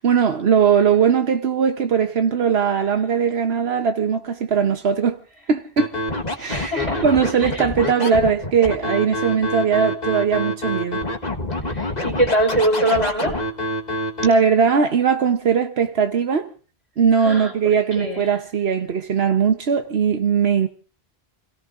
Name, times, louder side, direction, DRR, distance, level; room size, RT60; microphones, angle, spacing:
voice 1, 0.0-5.2 5.5-5.9 6.4-11.0 14.2-16.5 17.0-20.7, right 6 dB, 80° right, 1.3 m, -19 dB
Scratching (performance technique), 5.8-14.3, left 1 dB, 45° left, 1.6 m, -26 dB
voice 2, 6.3-7.0 7.5-7.6 8.0-8.3 11.7-13.4 17.2-18.3, right 1 dB, 35° right, 5.0 m, -23 dB
29.5 x 17.5 x 2.6 m
omnidirectional pair, 1.0 m